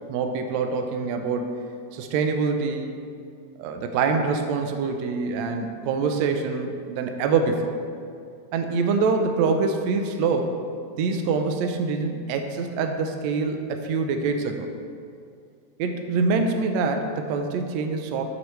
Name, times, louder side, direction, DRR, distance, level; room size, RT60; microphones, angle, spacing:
voice 1, 0.1-1.6 1.9-2.9 3.6-7.7 8.5-10.5 11.0-14.7 15.8-18.3, right 4 dB, 75° right, 5 dB, 1.8 m, -25 dB
12.5 x 8.1 x 3.3 m, 2.3 s
omnidirectional pair, 3.5 m